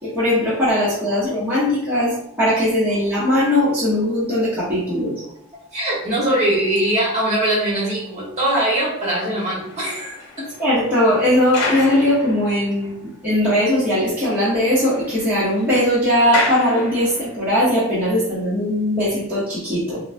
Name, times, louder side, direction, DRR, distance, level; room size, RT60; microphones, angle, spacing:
voice 1, 0.0-5.1 10.6-20.0, left 1 dB, 10° right, -11 dB, 0.9 m, -19 dB
voice 2, 5.7-10.5, right 1 dB, 30° right, -6 dB, 1.3 m, -21 dB
sound 1, 9.4-13.1 13.4-13.5 13.9-14.0 14.2-17.5 18.2-18.4, left 3 dB, 90° left, 0.9 m, -31 dB
3.7 x 2.2 x 2.6 m, 0.73 s
head